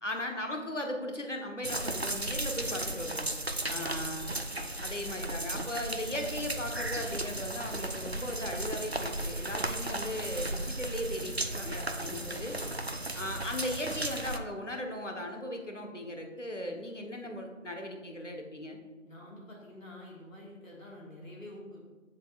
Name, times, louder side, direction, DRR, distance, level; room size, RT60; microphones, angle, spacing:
voice 1, 0.0-3.3 3.7-4.3 4.8-12.6 13.2-18.8, left 1 dB, 65° left, 3 dB, 1.2 m, -37 dB
sound 1, 1.6-14.4, right 1 dB, 55° right, 0.4 m, -35 dB
voice 2, 3.6-4.2 12.1-12.7 19.0-21.9, left 1 dB, 80° left, -3 dB, 1.9 m, -48 dB
7.7 x 7.4 x 2.4 m, 1.3 s
figure-of-eight pair, 175°, 40 cm